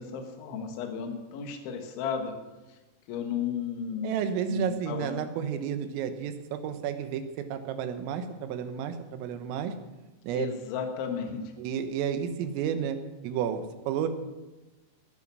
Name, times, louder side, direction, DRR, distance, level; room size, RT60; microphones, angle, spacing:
voice 1, 0.0-2.3 2.7-2.8 3.1-4.2 4.5-5.2 10.3-11.5, left 6 dB, 70° left, 4 dB, 3.9 m, -34 dB
voice 2, 4.0-9.7 10.3-10.5 11.6-13.0 13.2-14.1, right 8 dB, 85° right, 8 dB, 3.8 m, -31 dB
20.0 x 9.5 x 6.3 m, 1.1 s
omnidirectional pair, 5.8 m